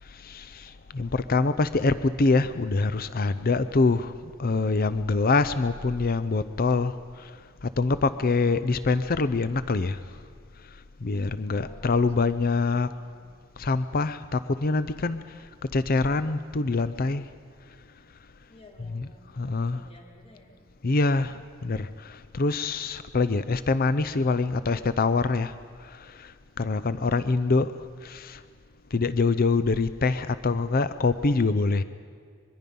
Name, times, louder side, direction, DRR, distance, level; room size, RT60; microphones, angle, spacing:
voice 1, 0.0-10.2 10.7-12.9 13.6-17.2 18.9-19.8 20.8-28.4 28.9-31.8, left 3 dB, 45° left, 13 dB, 0.6 m, -25 dB
voice 2, 3.6-4.1 11.5-13.3 18.5-20.5 26.8-27.2, left 1 dB, 30° left, -1 dB, 3.9 m, -55 dB
24.0 x 23.0 x 5.4 m, 2.1 s
head